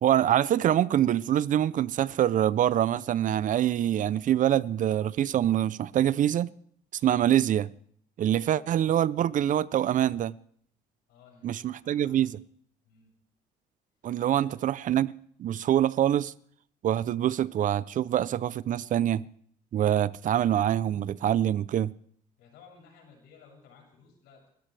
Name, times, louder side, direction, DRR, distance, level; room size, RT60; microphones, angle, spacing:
voice 1, 0.0-6.5 7.0-7.7 8.2-10.3 11.4-12.3 14.0-15.1 15.4-16.3 16.8-19.2 19.7-21.9, right 11 dB, 50° right, 0.6 m, -25 dB
voice 2, 11.1-12.3 12.8-13.1 14.3-14.6 22.4-24.5, left 6 dB, 85° left, 7.2 m, -56 dB
30.0 x 13.5 x 3.4 m
cardioid pair, 110°, 17 cm